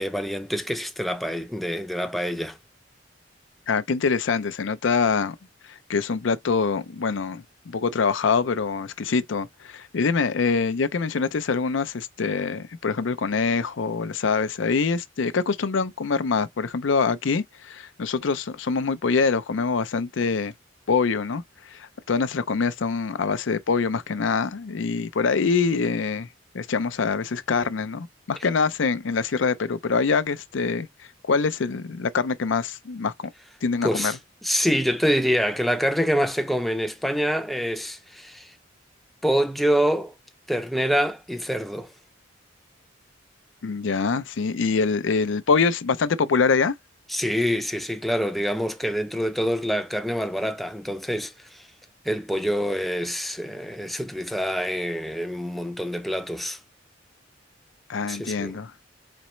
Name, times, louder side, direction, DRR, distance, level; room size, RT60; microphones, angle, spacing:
voice 1, 0.0-2.6 33.8-38.5 39.2-40.1 40.5-41.9 47.1-51.6 52.0-56.6 58.1-58.6, equal, ahead, 0.5 m, -26 dB
voice 2, 3.7-5.4 5.7-20.5 20.9-26.3 26.5-30.9 31.2-33.3 33.6-34.1 43.6-46.7 57.9-58.7, left 5 dB, 75° left, 0.5 m, -24 dB
4.2 x 4.0 x 3.1 m
head